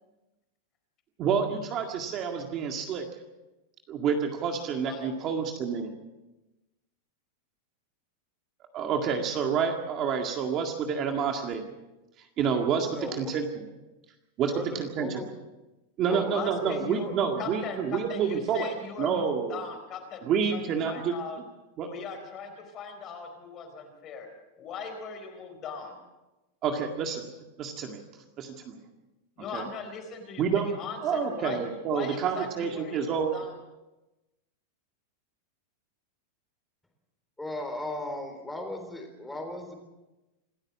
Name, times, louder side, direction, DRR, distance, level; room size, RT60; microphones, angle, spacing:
voice 1, 1.2-3.0 3.9-5.9 8.7-11.6 12.2-13.7 14.4-15.2 16.0-18.7 19.0-19.6 20.2-21.2 21.8-21.9 26.6-27.3 27.6-28.0 28.4-28.8 29.5-29.7 30.4-30.7 31.0-33.4, right 6 dB, 25° right, 3 dB, 2.0 m, -28 dB
voice 2, 4.7-5.2 16.1-21.4 21.8-24.3 24.6-26.0 29.4-33.5, left 5 dB, 25° left, 5 dB, 4.2 m, -39 dB
voice 3, 12.9-13.2 14.4-15.3 16.1-16.4 16.6-16.8 37.4-39.7, left 1 dB, 5° left, 4 dB, 3.7 m, -37 dB
26.5 x 14.5 x 7.4 m, 1.0 s
supercardioid pair, 170°, 0 cm